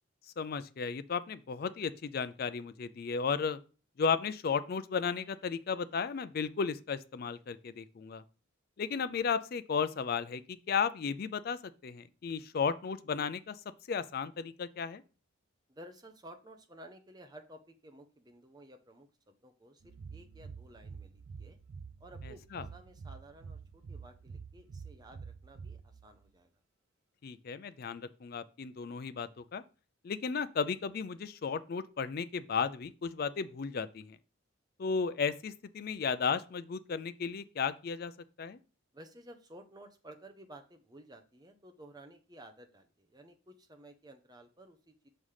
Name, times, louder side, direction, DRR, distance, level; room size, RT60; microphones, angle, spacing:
voice 1, 0.4-3.6 4.0-8.2 8.8-13.6 13.9-15.0 22.3-22.7 27.2-29.6 30.0-34.2 34.8-38.1 38.4-38.6, left 6 dB, 45° left, 0.3 m, -34 dB
voice 2, 15.7-21.6 22.0-26.5 38.9-45.1, right 1 dB, 20° right, 0.6 m, -54 dB
sound 1, 19.8-26.3, right 5 dB, 50° right, 0.3 m, -48 dB
6.2 x 3.3 x 5.5 m
head